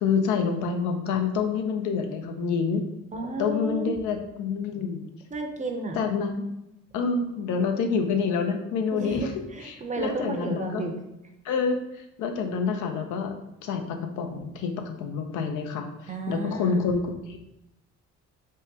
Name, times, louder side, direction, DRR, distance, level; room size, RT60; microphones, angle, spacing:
voice 1, 0.0-2.8 3.4-5.0 6.0-6.5 6.9-9.3 9.6-10.9 11.4-11.8 12.2-13.3 13.6-17.4, left 5 dB, 85° left, 5 dB, 0.5 m, -27 dB
voice 2, 3.1-4.0 5.3-6.0 8.9-10.9 16.1-16.9, right 3 dB, 25° right, 3 dB, 0.5 m, -32 dB
3.5 x 2.1 x 2.7 m, 0.89 s
cardioid pair, 90°, 30 cm